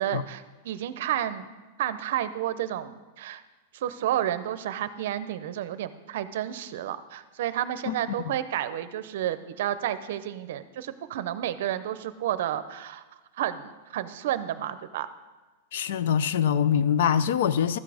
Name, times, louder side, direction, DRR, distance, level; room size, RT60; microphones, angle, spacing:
voice 1, 0.0-1.5 1.8-3.4 3.7-13.0 13.4-15.1, right 11 dB, 55° right, 0.6 m, -31 dB
voice 2, 15.7-17.8, left 8 dB, 60° left, 0.5 m, -24 dB
13.0 x 8.1 x 4.9 m
supercardioid pair, 180°, 0 cm